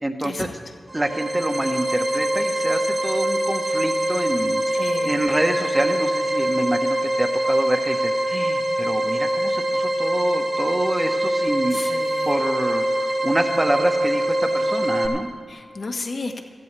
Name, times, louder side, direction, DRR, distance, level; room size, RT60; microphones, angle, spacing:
voice 1, 0.0-0.5 0.9-11.8 12.3-15.3, right 1 dB, 25° right, 4 dB, 1.3 m, -26 dB
sound 1, 0.9-15.1, right 1 dB, 60° right, 2.0 m, -23 dB
voice 2, 4.7-5.2 11.7-12.3 15.5-16.4, left 3 dB, 60° left, 4 dB, 1.4 m, -32 dB
17.0 x 14.0 x 3.4 m, 2.1 s
cardioid pair, 45°, 0 cm